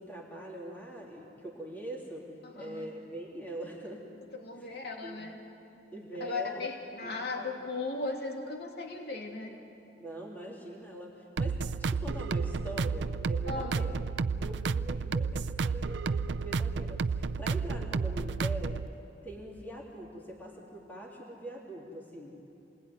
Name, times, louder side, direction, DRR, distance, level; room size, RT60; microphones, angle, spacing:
voice 1, 0.0-4.2 4.5-5.2 5.9-6.7 7.0-7.5 10.0-14.0 14.3-18.8 19.2-22.4, right 1 dB, 10° left, -3 dB, 3.3 m, -43 dB
voice 2, 2.4-2.9 4.3-5.4 6.2-9.6 13.5-13.8, left 3 dB, 65° left, 1 dB, 2.8 m, -37 dB
sound 1, 11.4-18.9, right 4 dB, 90° right, 0.5 m, -31 dB
28.0 x 20.5 x 9.6 m, 2.8 s
head